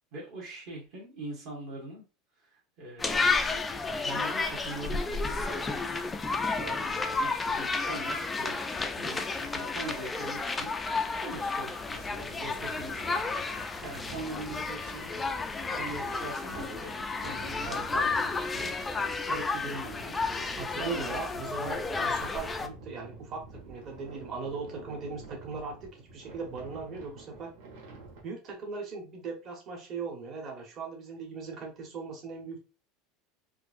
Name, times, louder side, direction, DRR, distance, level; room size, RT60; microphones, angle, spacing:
voice 1, 0.1-2.0 2.4-3.5 4.0-5.7 6.1-6.2 6.6-8.6 8.9-10.7 11.2-15.5 15.8-16.9 17.2-18.7 19.3-20.2 20.7-21.4, right 2 dB, 50° right, -3 dB, 1.6 m, -42 dB
sound 1, 3.0-22.7, left 3 dB, 10° left, 0.3 m, -32 dB
sound 2, 11.8-28.2, right 3 dB, 75° right, 1.4 m, -48 dB
voice 2, 20.6-27.5 28.2-32.6, right 4 dB, 35° right, 1 dB, 1.2 m, -39 dB
4.4 x 2.6 x 2.5 m, 0.31 s
supercardioid pair, 160°, 0 cm